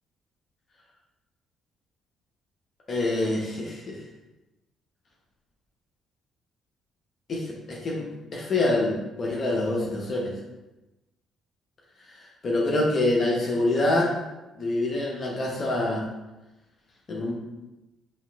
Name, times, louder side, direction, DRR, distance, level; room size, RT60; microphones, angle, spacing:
voice 1, 2.9-4.0 7.3-10.4 12.1-14.2 14.6-16.0 17.1-17.3, left 2 dB, 45° left, -2 dB, 0.8 m, -26 dB
5.4 x 2.6 x 2.3 m, 1.0 s
figure-of-eight pair, 45°, 0 cm